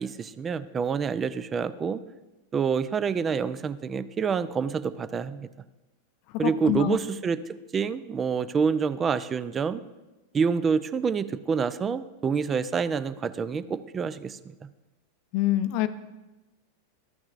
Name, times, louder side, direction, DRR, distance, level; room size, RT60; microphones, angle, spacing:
voice 1, 0.0-2.0 2.5-5.5 6.4-7.4 7.7-9.8 10.3-14.4, right 6 dB, 25° right, 14 dB, 0.4 m, -27 dB
voice 2, 6.4-7.0 15.3-15.9, left 13 dB, 45° left, 12 dB, 0.5 m, -25 dB
13.5 x 6.0 x 2.5 m, 1.1 s
figure-of-eight pair, 90°, 0 cm